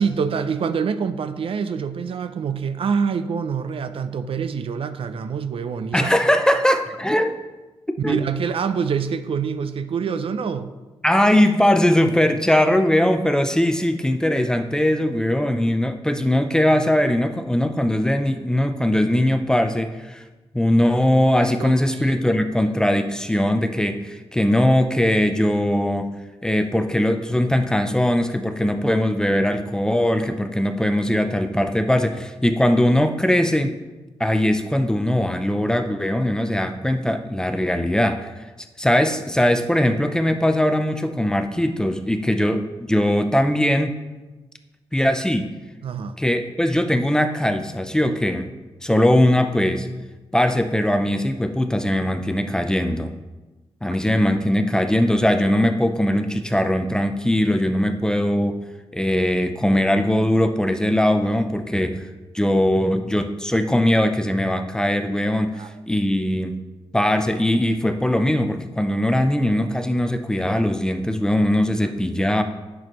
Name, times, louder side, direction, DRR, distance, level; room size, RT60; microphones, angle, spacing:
voice 1, 0.0-6.1 8.0-10.7 21.4-22.2 45.8-46.2 65.5-65.7 71.8-71.9, right 6 dB, 65° right, 11 dB, 0.5 m, -26 dB
voice 2, 5.9-7.4 8.0-8.2 11.0-20.2 20.5-26.1 26.4-33.8 34.2-38.3 38.8-44.0 44.9-45.5 46.2-48.5 48.8-49.9 50.3-53.1 53.8-58.6 58.9-62.0 62.3-65.6 65.9-66.6 66.9-72.4, left 1 dB, 5° left, 7 dB, 0.5 m, -20 dB
10.0 x 6.2 x 3.0 m, 1.1 s
wide cardioid pair, 130°, 10 cm